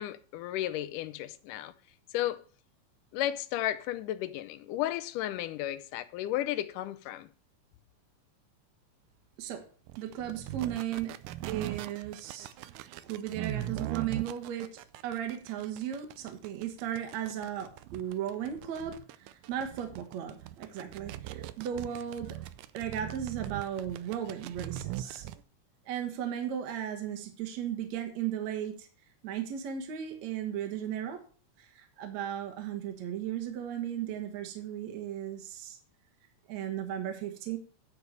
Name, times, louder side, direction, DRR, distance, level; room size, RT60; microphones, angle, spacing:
voice 1, 0.0-1.7 2.1-2.4 3.1-7.3, left 13 dB, 85° left, 2.2 m, -33 dB
sound 1, 9.9-25.4, right 13 dB, 85° right, 2.1 m, -40 dB
voice 2, 10.0-11.1 11.5-12.5 13.1-22.4 22.7-25.2 25.9-28.9 29.2-31.2 31.6-35.8 36.5-37.6, right 10 dB, 65° right, 2.4 m, -36 dB
9.9 x 4.8 x 6.5 m
omnidirectional pair, 3.7 m